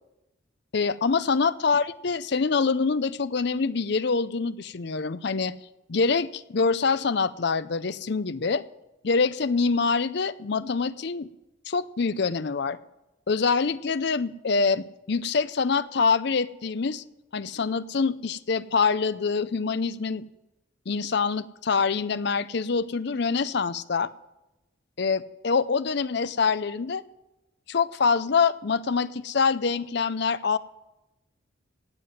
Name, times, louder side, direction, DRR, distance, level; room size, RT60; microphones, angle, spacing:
voice 1, 0.7-5.5 5.9-8.6 9.0-11.3 11.7-12.8 13.3-17.0 17.3-20.3 20.9-24.1 25.0-27.0 27.7-30.6, left 5 dB, 55° left, 15 dB, 0.5 m, -25 dB
17.5 x 7.6 x 7.7 m, 0.99 s
head